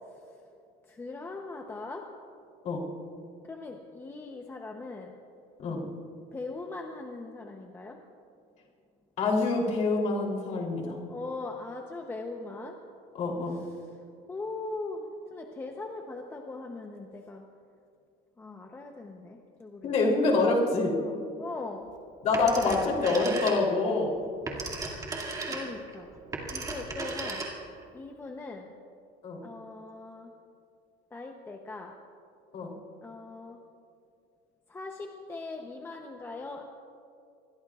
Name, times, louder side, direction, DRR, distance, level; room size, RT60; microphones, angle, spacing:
voice 1, 0.9-2.1 3.4-5.1 6.3-8.0 11.1-12.8 13.5-13.9 14.3-17.4 18.4-19.9 21.0-21.9 22.5-22.8 24.6-25.0 25.4-26.1 26.5-27.5 27.9-28.7 29.4-30.3 31.1-32.0 33.0-33.6 34.7-36.6, left 3 dB, 15° left, 2 dB, 0.8 m, -40 dB
voice 2, 9.2-10.9 13.2-13.6 19.8-20.9 22.2-24.1 29.2-29.4 32.5-32.7, left 3 dB, 45° left, -1 dB, 3.4 m, -26 dB
Telephone, 22.3-23.9 24.2-27.8, right 3 dB, 20° right, 2.4 m, -36 dB
26.5 x 22.0 x 2.4 m, 2.4 s
cardioid pair, 165°, 17 cm